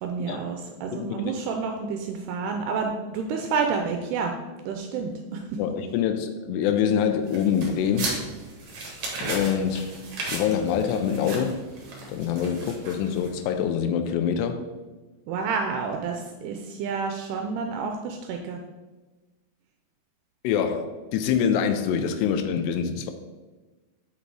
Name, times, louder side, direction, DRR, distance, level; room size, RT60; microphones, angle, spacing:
voice 1, 0.0-4.3 4.7-5.6 15.3-18.6, right 5 dB, 80° right, 3 dB, 2.5 m, -29 dB
voice 2, 0.9-1.3 5.6-8.2 9.2-9.9 10.3-11.6 12.1-14.7 20.4-23.1, left 8 dB, 90° left, 7 dB, 2.7 m, -25 dB
sound 1, 7.3-13.5, right 2 dB, 55° right, 2.3 m, -36 dB
7.9 x 4.1 x 4.6 m, 1.2 s
omnidirectional pair, 4.7 m